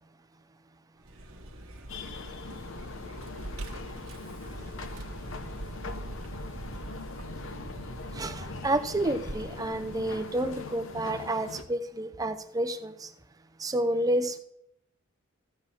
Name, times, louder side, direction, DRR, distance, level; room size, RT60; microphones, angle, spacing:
Vehicle, 1.0-11.3, right 1 dB, 70° right, 1.3 m, -42 dB
sound 1, 1.9-11.6, left 4 dB, 60° left, 0.7 m, -42 dB
voice 1, 8.1-13.1 13.6-14.4, right 1 dB, 15° right, 0.5 m, -30 dB
14.0 x 4.8 x 7.3 m
head